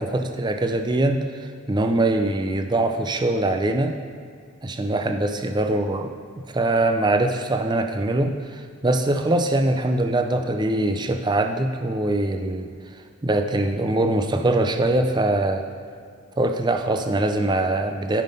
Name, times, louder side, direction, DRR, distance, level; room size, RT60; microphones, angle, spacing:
voice 1, 0.0-3.9 4.6-6.1 6.5-15.6 16.4-18.2, right 2 dB, 20° right, 6 dB, 0.4 m, -23 dB
9.3 x 5.5 x 5.3 m, 2.2 s
head